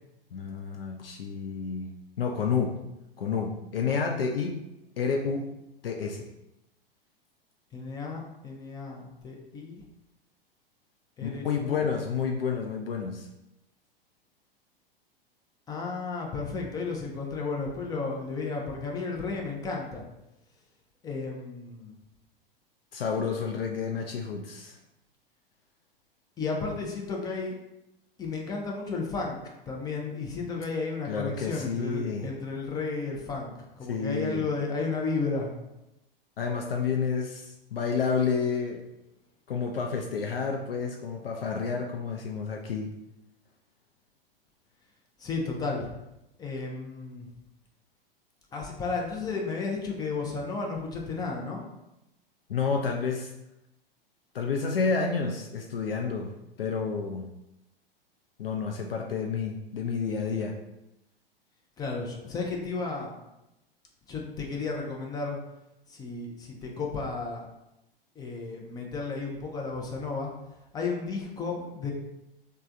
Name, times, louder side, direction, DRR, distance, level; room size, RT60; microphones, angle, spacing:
voice 1, 0.3-1.9 2.2-2.7 3.2-4.6 5.0-5.4 5.8-6.3 11.2-13.3 22.9-24.7 31.0-32.3 33.9-34.5 36.4-38.8 39.5-42.9 52.5-53.3 54.3-56.3 56.6-57.2 58.4-60.5, left 5 dB, 75° left, 2 dB, 0.5 m, -30 dB
voice 2, 7.7-9.8 11.2-11.8 15.7-20.0 21.0-21.9 26.4-27.6 28.2-29.4 29.7-35.5 45.2-45.9 46.4-47.3 48.5-51.6 61.8-63.1 64.1-65.4 65.9-67.4 68.2-70.3 70.7-71.9, left 4 dB, 15° left, 0 dB, 0.4 m, -33 dB
3.3 x 2.2 x 3.6 m, 0.91 s
figure-of-eight pair, 95°, 29 cm